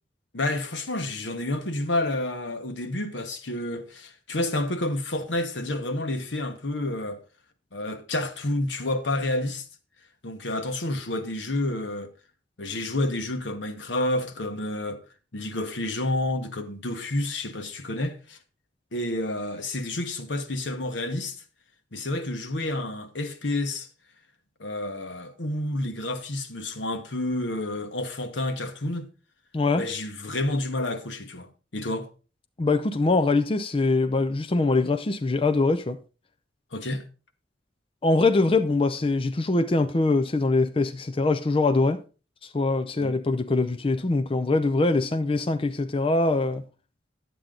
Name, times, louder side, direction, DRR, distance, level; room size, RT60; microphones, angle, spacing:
voice 1, 0.3-7.2 7.7-9.6 10.2-12.1 12.6-15.0 15.3-18.4 18.9-21.4 21.9-23.9 24.6-29.1 29.8-32.1 36.7-37.0 43.0-43.2, left 1 dB, 80° left, 1.2 m, -29 dB
voice 2, 29.5-29.8 32.6-36.0 38.0-42.0 42.4-46.6, left 3 dB, 30° left, 0.5 m, -23 dB
10.5 x 8.3 x 3.8 m
head